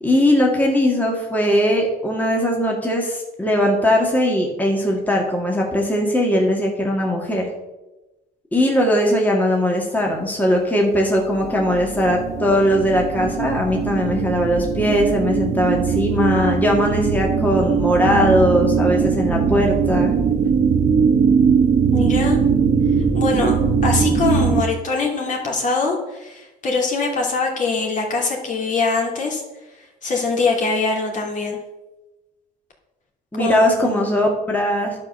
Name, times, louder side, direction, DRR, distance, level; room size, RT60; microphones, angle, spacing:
voice 1, 0.0-7.4 8.5-20.1 33.3-35.0, equal, 10° left, -1 dB, 2.0 m, -19 dB
sound 1, 11.3-24.6, right 6 dB, 40° right, 0.8 m, -20 dB
voice 2, 21.9-22.4 23.1-23.5 23.8-29.4 30.0-31.6 33.4-34.1, left 4 dB, 50° left, 0 dB, 2.9 m, -23 dB
11.0 x 5.2 x 6.7 m, 1.0 s
cardioid pair, 110°, 17 cm